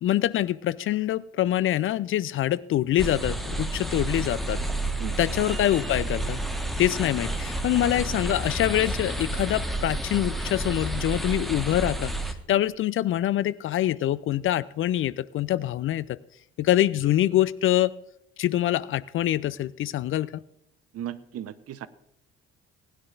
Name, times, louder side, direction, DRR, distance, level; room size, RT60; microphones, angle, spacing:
voice 1, 0.0-4.6 5.2-6.4 6.8-12.1 12.5-16.2 16.6-17.9 18.4-20.3, left 13 dB, 45° left, 19 dB, 0.5 m, -25 dB
sound 1, 3.0-12.3, right 1 dB, ahead, 1.4 m, -30 dB
voice 2, 20.9-21.9, right 11 dB, 50° right, 14 dB, 0.9 m, -36 dB
20.0 x 10.5 x 2.5 m, 0.74 s
figure-of-eight pair, 50°, 31 cm